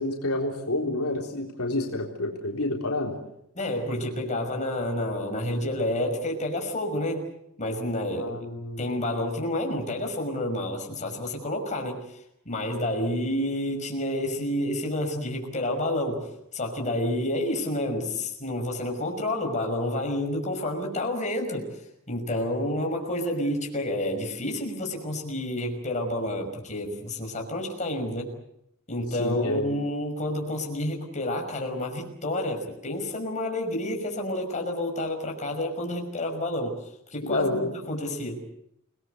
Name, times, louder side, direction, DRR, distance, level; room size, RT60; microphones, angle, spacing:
voice 1, 0.0-3.2 8.1-8.8 29.2-29.8 37.2-37.7, left 2 dB, 70° left, 0 dB, 3.8 m, -29 dB
voice 2, 3.5-7.3 7.6-8.3 8.8-12.2 12.5-28.3 28.9-36.8 37.1-38.4, left 1 dB, 35° left, 2 dB, 5.8 m, -29 dB
29.0 x 19.5 x 8.0 m, 0.77 s
head